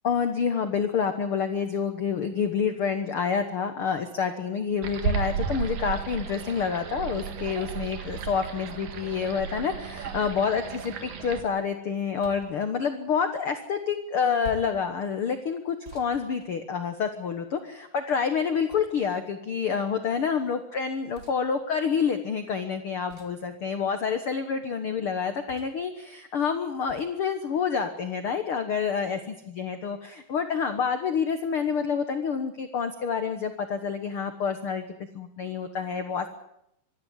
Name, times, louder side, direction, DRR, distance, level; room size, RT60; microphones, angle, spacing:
voice 1, 0.0-34.9 35.1-36.3, left 6 dB, 85° left, 8 dB, 1.2 m, -28 dB
sound 1, 4.8-11.4, right 7 dB, 65° right, 3.3 m, -33 dB
sound 2, 12.2-12.6 14.4-14.8 15.8-17.0 18.7-19.3 21.1-21.4 23.1-23.5 25.5-25.9 26.9-27.1, right 2 dB, 25° right, 2.6 m, -46 dB
25.0 x 12.0 x 9.8 m, 0.78 s
omnidirectional pair, 4.5 m